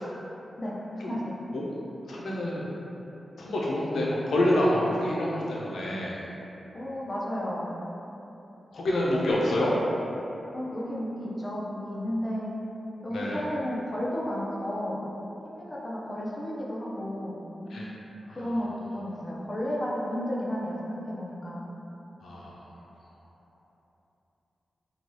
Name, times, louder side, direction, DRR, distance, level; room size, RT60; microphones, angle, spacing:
voice 1, 0.6-1.4 6.7-7.7 10.5-12.6 13.0-15.1 15.4-17.4 18.3-21.7, equal, 30° left, -6 dB, 0.5 m, -33 dB
voice 2, 2.1-2.7 3.4-6.2 8.7-9.7 13.1-13.4 17.7-17.9 18.2-18.4 22.2-22.6, left 1 dB, 90° left, -5 dB, 0.4 m, -27 dB
2.7 x 2.2 x 3.1 m, 3.0 s
wide cardioid pair, 90°, 0 cm